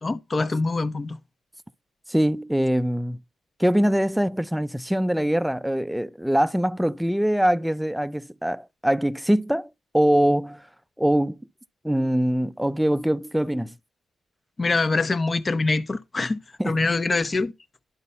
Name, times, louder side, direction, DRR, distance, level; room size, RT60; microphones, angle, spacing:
voice 1, 0.0-1.2 14.6-16.4 16.6-17.5, left 3 dB, 35° left, 1.1 m, -24 dB
voice 2, 2.1-3.2 3.6-10.6 11.0-11.4 11.8-13.7 16.6-16.8, equal, 5° right, 0.6 m, -23 dB
11.5 x 4.0 x 5.4 m
supercardioid pair, 55°, 0 cm